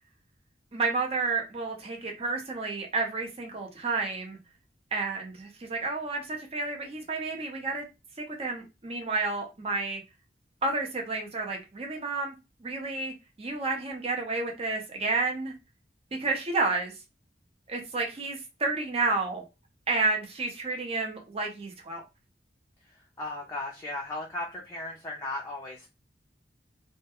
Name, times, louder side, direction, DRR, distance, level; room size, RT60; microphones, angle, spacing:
voice 1, 0.7-4.4 4.9-7.8 8.4-10.0 10.6-12.3 12.6-15.5 16.2-16.9 17.7-19.4 19.9-22.0, right 3 dB, 35° right, 0.5 m, -30 dB
voice 2, 23.2-25.9, left 2 dB, 20° left, 0.4 m, -36 dB
2.2 x 2.1 x 2.8 m
head